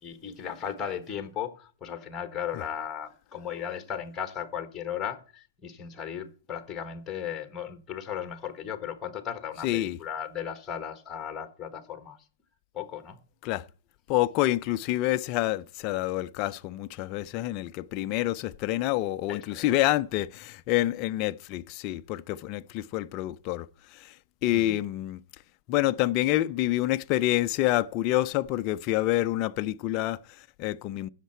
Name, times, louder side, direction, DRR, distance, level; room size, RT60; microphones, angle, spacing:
voice 1, 0.0-12.2 12.7-13.2 19.3-19.7 24.5-24.7, left 8 dB, 10° left, 1.2 m, -36 dB
voice 2, 9.6-10.0 13.4-13.6 14.1-24.2 24.4-25.2 25.7-31.1, left 15 dB, 25° left, 0.4 m, -27 dB
16.5 x 6.5 x 4.4 m
hypercardioid pair, 170°, 0 cm